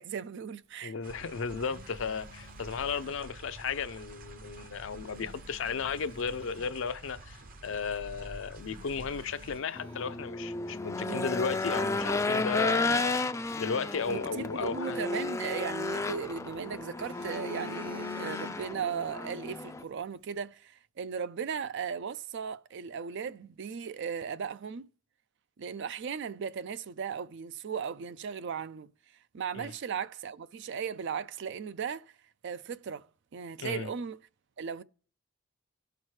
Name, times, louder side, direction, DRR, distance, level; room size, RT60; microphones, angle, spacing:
voice 1, 0.0-0.9 11.0-11.3 14.1-24.9 25.6-28.9 29.3-32.1 32.4-33.1 33.3-34.2 34.6-34.8, right 6 dB, 60° right, 0.4 m, -37 dB
voice 2, 0.8-13.2 13.6-15.0 29.5-29.7 33.6-33.9, left 5 dB, 65° left, 0.5 m, -34 dB
sound 1, 1.0-9.6, right 1 dB, 45° right, 0.8 m, -48 dB
Telephone, 1.1-3.6 4.9-6.8 7.4-7.6 8.1-8.2 8.6-10.6 10.9-11.0 11.5-13.9 15.4-16.4 16.8-18.9 19.2-19.5, left 3 dB, 85° right, 3.4 m, -50 dB
Race car auto racing / Engine, 9.8-19.8, left 3 dB, 15° left, 0.3 m, -33 dB
17.5 x 5.8 x 3.2 m
head